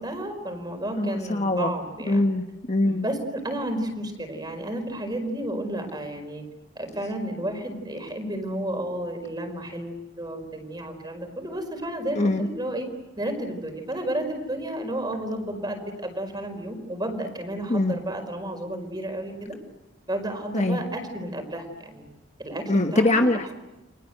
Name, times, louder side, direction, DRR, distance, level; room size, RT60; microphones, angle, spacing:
voice 1, 0.0-2.2 2.9-6.4 6.7-12.9 13.2-19.6 20.1-22.0 22.4-23.3, right 1 dB, 20° right, 5 dB, 4.9 m, -32 dB
voice 2, 1.0-1.7 2.1-3.1 12.2-12.5 17.7-18.0 20.5-20.8 22.7-23.5, left 2 dB, 40° left, 5 dB, 1.3 m, -23 dB
29.5 x 24.5 x 7.9 m, 0.98 s
head